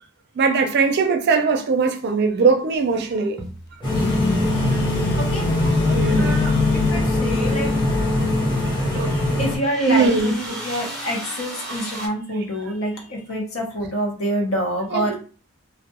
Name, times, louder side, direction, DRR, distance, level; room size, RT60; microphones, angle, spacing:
voice 1, 0.4-3.4 4.4-4.8 5.4-6.5 7.2-7.7 8.2-9.5 9.9-10.5 11.7-12.0 14.9-15.1, right 4 dB, 50° right, 0.4 m, -22 dB
sound 1, 3.4-4.1 6.1-6.2 6.7-6.8 8.3-8.4 8.9-9.0 9.5-12.1, right 1 dB, ahead, 0.5 m, -34 dB
sound 2, 3.8-9.6, left 2 dB, 20° left, 0.8 m, -22 dB
Telephone, 3.9-7.0, left 4 dB, 50° left, 0.3 m, -25 dB
voice 2, 4.0-5.4 6.2-6.5 6.9-7.7 9.4-15.1, equal, 80° left, 0.8 m, -27 dB
2.2 x 2.1 x 2.8 m
head